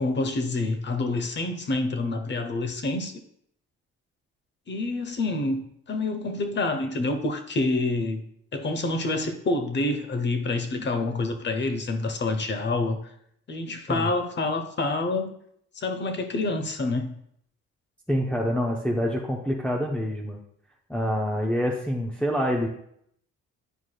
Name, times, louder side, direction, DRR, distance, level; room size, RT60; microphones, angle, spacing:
voice 1, 0.0-3.1 4.7-5.6 5.9-8.2 8.5-13.0 13.5-15.3 15.8-17.1, left 2 dB, 35° left, 8 dB, 0.9 m, -27 dB
voice 2, 18.1-20.4 20.9-22.7, equal, 5° left, -2 dB, 0.7 m, -26 dB
9.0 x 4.7 x 2.3 m, 0.70 s
cardioid pair, 90°, 30 cm